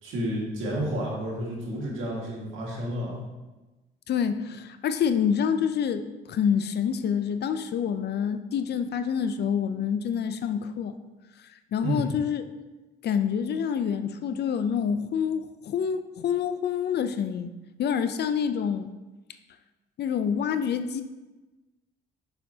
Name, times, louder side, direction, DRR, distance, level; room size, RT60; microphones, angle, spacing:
voice 1, 0.0-3.2 11.8-12.1, equal, 85° right, -3 dB, 1.9 m, -30 dB
voice 2, 4.1-10.9 11.7-12.4 13.0-17.5 17.8-18.9 20.0-21.0, left 7 dB, 55° left, 10 dB, 0.5 m, -27 dB
6.7 x 5.7 x 2.8 m, 1.1 s
cardioid pair, 90°, 20 cm